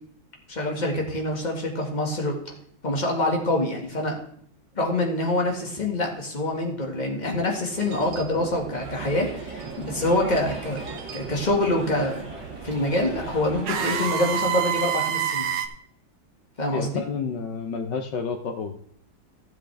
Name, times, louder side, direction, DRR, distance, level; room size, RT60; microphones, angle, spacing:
voice 1, 0.5-2.4 2.8-4.2 4.8-12.3 12.6-15.5 16.6-17.0, left 1 dB, 25° left, 1 dB, 1.9 m, -26 dB
sound 1, 7.8-15.7, right 9 dB, 75° right, 1.6 m, -31 dB
sound 2, 8.7-14.1, equal, 45° right, 2.8 m, -41 dB
voice 2, 16.7-18.8, left 5 dB, 75° left, 6 dB, 1.4 m, -30 dB
15.5 x 7.5 x 3.4 m, 0.66 s
omnidirectional pair, 2.0 m